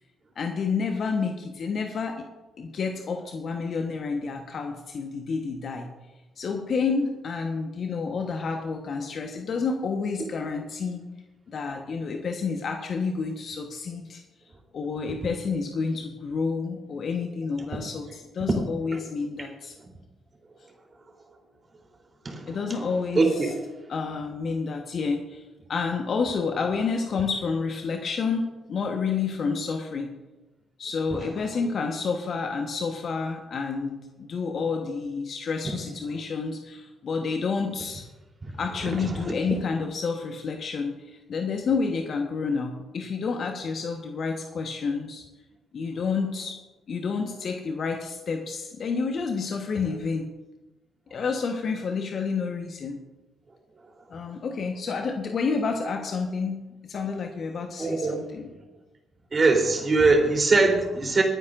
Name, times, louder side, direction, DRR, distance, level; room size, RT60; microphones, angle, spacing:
voice 1, 0.4-2.2 2.6-5.9 6.4-11.0 11.5-14.2 14.7-19.8 22.5-23.5 23.9-25.4 25.7-30.1 30.8-38.0 38.6-45.2 45.7-46.6 46.9-50.3 51.1-53.0 54.1-58.5, left 5 dB, 55° left, 3 dB, 1.2 m, -29 dB
voice 2, 23.1-23.5 57.8-58.2 59.3-61.2, right 3 dB, 35° right, 1 dB, 3.5 m, -21 dB
25.5 x 9.7 x 2.6 m, 1.1 s
hypercardioid pair, 45°, 0 cm